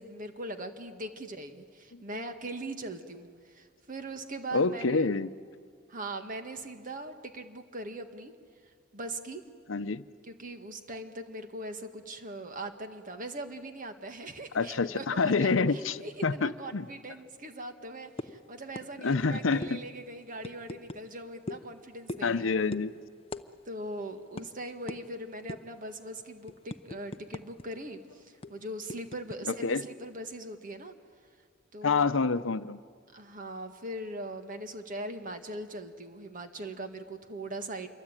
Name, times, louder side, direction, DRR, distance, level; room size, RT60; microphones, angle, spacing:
voice 1, 0.0-5.1 5.9-8.3 8.9-9.4 10.2-22.5 23.7-31.0 31.7-32.1 33.1-37.9, right 1 dB, 45° right, 7 dB, 1.8 m, -40 dB
voice 2, 4.5-5.3 9.7-10.0 14.5-16.8 19.0-19.8 22.2-22.9 29.6-29.8 31.8-32.8, left 4 dB, 75° left, 13 dB, 0.7 m, -27 dB
sound 1, 18.2-18.4 18.8-18.9 19.1-19.3 19.6-19.7 20.4-21.0 21.5-21.7 22.1-22.4 22.7-22.9 23.3-23.5 23.7-23.9 24.4-24.5 24.9-25.0 25.5-25.8 26.2-27.6 27.9-28.0 28.4-29.4, left 2 dB, 30° left, 0.7 m, -39 dB
27.0 x 23.0 x 9.0 m, 2.1 s
head